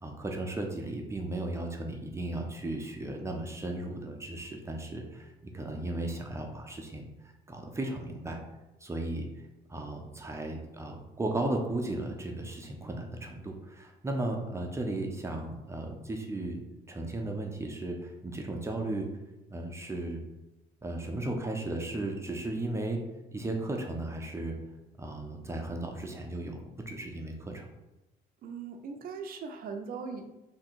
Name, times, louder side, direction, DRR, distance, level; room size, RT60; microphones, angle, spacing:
voice 1, 0.0-7.1 7.5-8.4 8.8-9.3 9.7-16.6 16.9-19.1 19.5-20.2 20.8-23.0 23.3-24.5 25.0-27.7, right 2 dB, 15° right, 1 dB, 0.7 m, -35 dB
voice 2, 28.4-30.2, right 5 dB, 60° right, 5 dB, 0.6 m, -39 dB
3.7 x 2.9 x 4.5 m, 0.98 s
cardioid pair, 110°, 17 cm